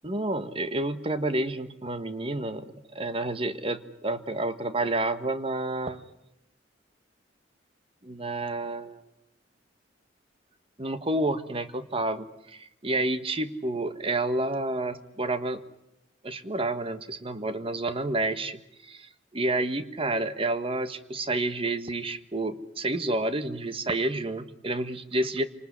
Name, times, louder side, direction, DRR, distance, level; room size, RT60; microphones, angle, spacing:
voice 1, 0.0-6.0 8.0-9.0 10.8-15.6 16.2-25.5, right 2 dB, 30° right, 11 dB, 1.4 m, -29 dB
28.5 x 19.5 x 9.7 m, 0.84 s
head